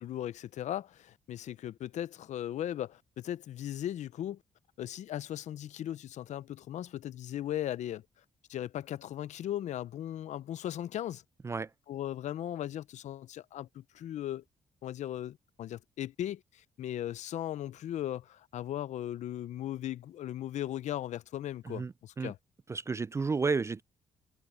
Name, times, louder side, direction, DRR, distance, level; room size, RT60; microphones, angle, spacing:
voice 1, 0.0-4.4 4.8-8.0 8.5-11.2 11.9-14.4 14.8-22.4, left 12 dB, 70° left, 0.6 m, -37 dB
voice 2, 21.6-22.3 22.7-23.8, right 4 dB, 20° right, 0.3 m, -32 dB
cardioid pair, 100°, 12 cm